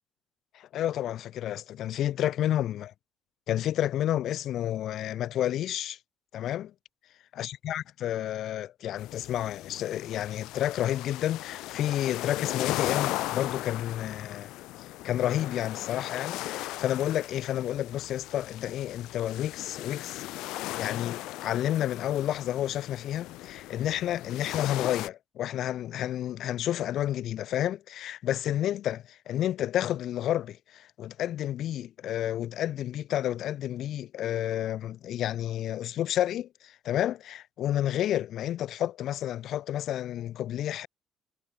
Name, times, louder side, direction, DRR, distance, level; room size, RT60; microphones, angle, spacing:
voice 1, 0.5-2.9 3.5-6.0 6.3-6.7 7.4-14.5 14.8-20.2 20.6-40.9, left 12 dB, 55° left, 0.7 m, -30 dB
sound 1, 9.0-25.1, left 18 dB, 80° left, 2.1 m, -37 dB
cardioid pair, 140°, 0 cm